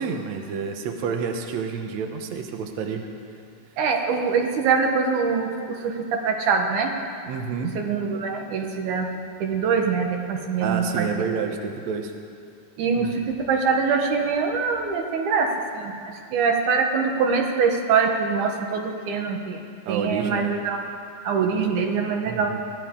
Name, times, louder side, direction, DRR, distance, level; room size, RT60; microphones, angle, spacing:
voice 1, 0.0-3.0 7.3-7.7 10.6-12.1 12.9-13.1 19.9-20.5 22.2-22.6, right 6 dB, 85° right, 4 dB, 1.6 m, -29 dB
voice 2, 3.8-5.5 5.8-6.9 7.8-9.1 9.4-11.1 12.8-15.5 15.7-15.9 16.3-20.8 21.2-22.6, right 5 dB, 65° right, 3 dB, 2.3 m, -23 dB
22.0 x 16.0 x 3.7 m, 2.4 s
omnidirectional pair, 4.6 m